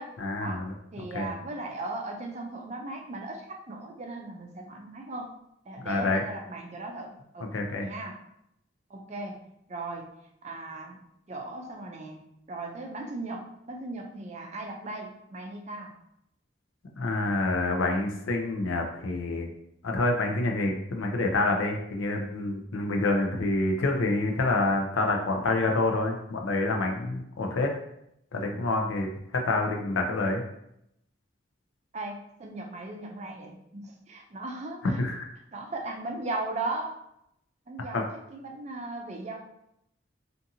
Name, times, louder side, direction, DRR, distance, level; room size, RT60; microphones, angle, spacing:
voice 1, 0.2-0.7 1.1-1.3 5.8-6.2 7.4-7.9 17.0-19.5 19.8-27.7 28.3-29.1 29.3-30.4 35.0-35.3 37.9-38.0, left 2 dB, 90° left, 2 dB, 0.5 m, -27 dB
voice 2, 0.9-5.3 5.7-7.5 7.8-8.2 8.9-10.1 10.4-11.0 11.3-15.9 31.9-35.0 35.5-36.9 37.7-39.4, right 2 dB, 35° right, 1 dB, 0.4 m, -37 dB
2.5 x 2.5 x 2.7 m, 0.78 s
head